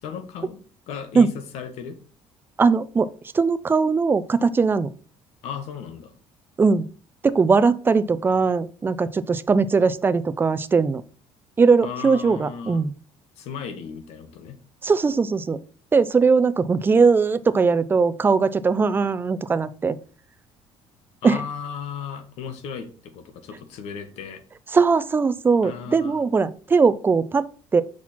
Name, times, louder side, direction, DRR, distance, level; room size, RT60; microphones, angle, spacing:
voice 1, 0.0-0.6 0.9-2.0 5.4-6.1 11.8-12.8 13.4-14.6 21.2-24.4 25.6-26.2, left 7 dB, 75° left, 7 dB, 1.5 m, -35 dB
voice 2, 2.6-3.1 3.3-4.9 6.6-6.9 7.2-11.0 11.6-12.9 14.8-15.6 15.9-20.0 21.2-21.4 24.7-27.5 27.7-27.8, right 4 dB, 20° right, 14 dB, 0.5 m, -20 dB
5.9 x 4.3 x 6.0 m, 0.40 s
cardioid pair, 135°, 11 cm